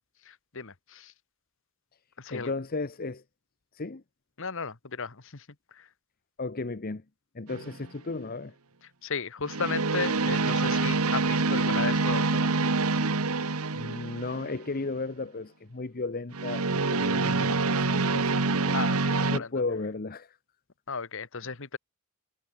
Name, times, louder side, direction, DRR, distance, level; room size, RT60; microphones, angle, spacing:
voice 1, 0.2-1.1 2.2-2.5 4.4-5.4 5.7-5.9 9.0-12.5 18.7-19.5 20.9-21.8, left 5 dB, 60° left, 1.4 m, -35 dB
voice 2, 2.3-3.2 3.7-4.0 6.4-7.0 7.3-8.5 13.7-18.8 19.3-20.4 21.3-21.5, left 3 dB, 40° left, 0.8 m, -35 dB
sound 1, 7.5-7.8 9.5-14.6 16.3-19.4, right 3 dB, 80° right, 1.4 m, -26 dB
head